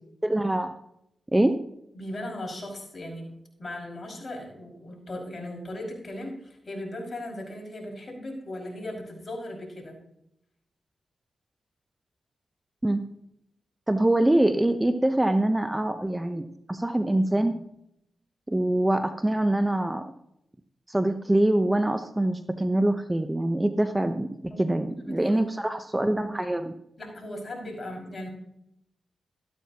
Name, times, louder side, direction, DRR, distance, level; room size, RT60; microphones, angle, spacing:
voice 1, 0.2-0.7 1.3-1.6 12.8-13.0 13.9-17.7 18.5-20.1 20.9-26.7, right 1 dB, 15° right, 9 dB, 0.9 m, -24 dB
voice 2, 1.9-3.3 3.6-10.0 24.5-25.7 27.0-28.3, left 1 dB, 45° left, 0 dB, 5.5 m, -38 dB
13.5 x 12.0 x 2.9 m, 0.78 s
supercardioid pair, 40°, 0 cm